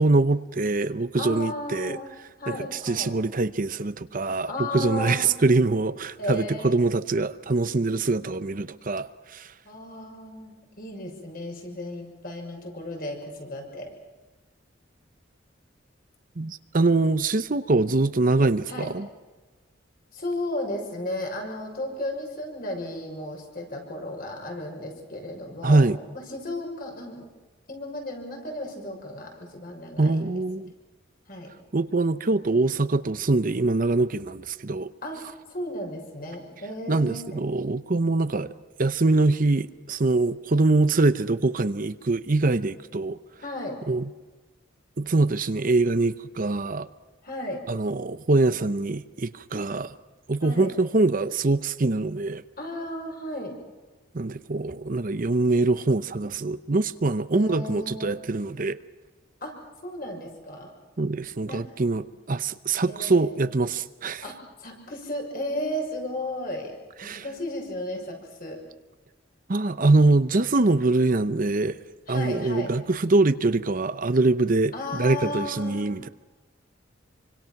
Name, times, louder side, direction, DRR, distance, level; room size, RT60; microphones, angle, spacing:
voice 1, 0.0-2.0 2.5-9.5 16.4-19.1 25.6-26.0 30.0-30.7 31.7-34.9 36.9-38.5 38.8-43.2 43.9-44.1 45.0-46.9 47.7-49.9 50.3-52.4 54.1-58.8 61.0-64.2 67.0-67.2 69.5-71.8 72.1-76.1, right 3 dB, 45° right, 12 dB, 0.8 m, -23 dB
voice 2, 1.1-2.1 2.4-3.1 4.5-5.3 6.2-6.8 9.6-13.9 18.7-18.9 20.1-25.9 26.3-27.3 27.7-30.2 31.3-31.5 35.0-37.4 43.4-43.8 47.2-47.6 50.4-50.7 52.6-53.5 57.3-58.2 59.4-59.5 59.8-60.7 61.5-61.6 62.9-63.4 64.2-66.7 67.0-68.6 72.1-72.7 74.7-76.0, left 1 dB, 50° left, 2 dB, 6.5 m, -34 dB
27.5 x 25.0 x 6.0 m, 1.2 s
head